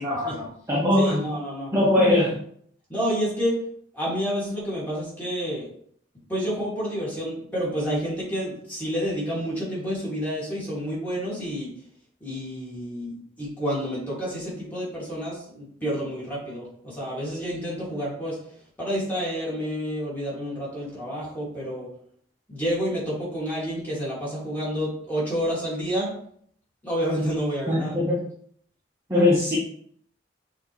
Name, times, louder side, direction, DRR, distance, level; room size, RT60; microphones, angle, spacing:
voice 1, 0.0-1.2 1.7-2.3 27.7-28.2 29.1-29.6, left 1 dB, 15° right, -8 dB, 0.9 m, -21 dB
voice 2, 1.0-1.7 2.9-3.7 3.9-5.7 6.3-11.7 12.2-18.4 18.8-21.9 22.5-26.1 26.8-27.9, equal, 10° left, -7 dB, 2.0 m, -29 dB
6.1 x 2.8 x 3.0 m, 0.63 s
head